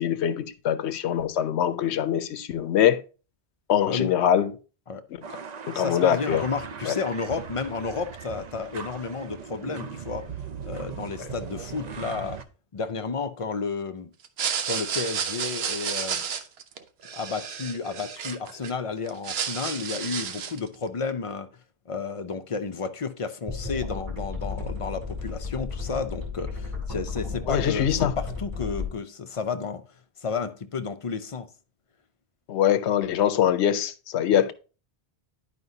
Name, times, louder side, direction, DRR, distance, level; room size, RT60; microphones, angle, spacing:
voice 1, 0.0-3.0 3.7-4.5 5.7-6.4 6.9-7.0 27.5-28.1 32.5-34.5, left 10 dB, 85° left, 0.9 m, -23 dB
sound 1, 5.2-12.4, right 6 dB, 50° right, 0.6 m, -39 dB
voice 2, 5.7-10.3 10.6-12.4 12.7-14.1 14.7-16.2 17.1-21.5 21.9-29.8 30.2-31.5 34.3-34.5, left 5 dB, 45° left, 0.4 m, -32 dB
sound 2, 14.2-18.7 19.1-20.7, right 7 dB, 70° right, 0.9 m, -31 dB
sound 3, 23.5-28.9, left 4 dB, 25° right, 2.3 m, -33 dB
11.0 x 5.0 x 2.7 m
omnidirectional pair, 1.1 m